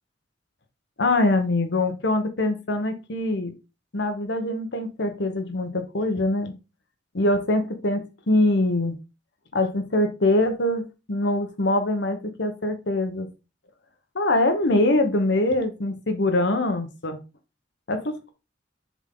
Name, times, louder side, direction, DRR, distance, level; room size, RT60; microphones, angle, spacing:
voice 1, 1.0-3.5 3.9-6.5 7.1-8.9 9.5-10.8 11.1-13.3 14.1-17.2 17.9-18.3, left 2 dB, 65° left, 7 dB, 1.2 m, -23 dB
7.2 x 3.8 x 3.8 m, 0.29 s
head